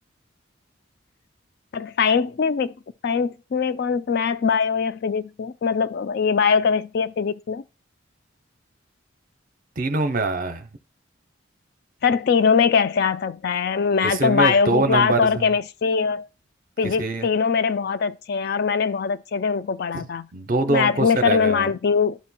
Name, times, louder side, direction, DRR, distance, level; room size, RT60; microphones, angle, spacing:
voice 1, 1.7-2.7 3.0-7.6 12.0-16.2 16.8-20.2 20.7-22.2, left 6 dB, 50° left, 0.3 m, -22 dB
voice 2, 9.8-10.7 14.0-15.5 16.8-17.3 19.9-20.0 20.3-21.7, right 2 dB, 45° right, 0.7 m, -24 dB
11.5 x 4.4 x 2.2 m
head